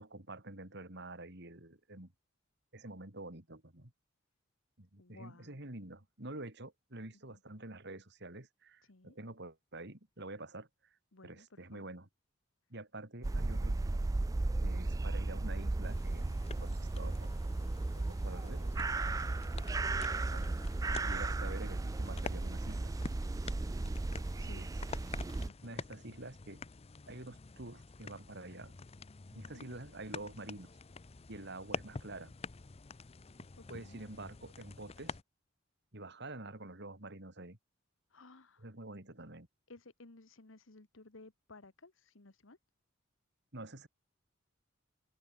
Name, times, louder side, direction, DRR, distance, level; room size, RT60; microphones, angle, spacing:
voice 1, 0.0-2.1 2.7-3.9 4.8-10.7 11.2-12.1 12.7-14.1 14.6-17.3 18.0-18.7 20.3-20.6 21.1-22.9 24.6-24.7 25.6-26.6 27.1-28.7 29.3-30.7 31.3-32.3 33.7-35.2 35.9-37.6 38.6-39.5 43.5-43.9, right 2 dB, 55° right, 3.6 m, -47 dB
voice 2, 5.0-5.6 7.3-7.4 8.8-9.2 11.1-11.9 24.4-24.7 25.4-25.8 29.5-29.8 33.6-34.0 38.1-38.7 39.7-42.6, left 2 dB, 70° left, 1.5 m, -57 dB
sound 1, 13.2-25.5, right 2 dB, 15° right, 0.3 m, -35 dB
sound 2, 15.8-35.2, left 4 dB, 30° left, 0.6 m, -48 dB
open air
head